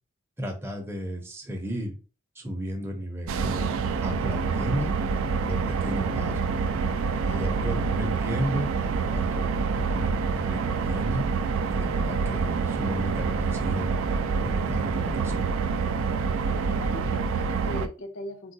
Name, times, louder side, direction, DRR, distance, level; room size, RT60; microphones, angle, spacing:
voice 1, 0.4-2.0 2.4-3.7 4.0-4.9 5.4-6.5 7.2-8.7 8.9-11.2 11.7-13.9 14.4-15.5, equal, 10° right, 2 dB, 0.5 m, -33 dB
sound 1, 3.3-17.9, right 5 dB, 90° right, 0.3 m, -27 dB
voice 2, 7.0-7.7 16.5-18.5, left 1 dB, 75° left, 7 dB, 0.7 m, -40 dB
3.7 x 2.3 x 2.6 m, 0.34 s
head